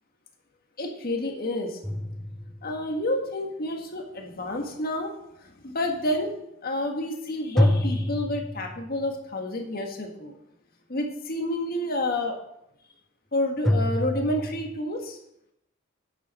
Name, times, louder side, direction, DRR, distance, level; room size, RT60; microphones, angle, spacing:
voice 1, 0.8-1.8 2.6-5.1 5.4-6.3 6.6-10.3 10.9-12.4 13.3-15.2, left 1 dB, 50° left, 3 dB, 1.7 m, -29 dB
sound 1, 1.8-3.0 7.6-9.1 13.6-14.8, left 1 dB, ahead, 0.3 m, -26 dB
9.2 x 8.4 x 5.6 m, 0.79 s
head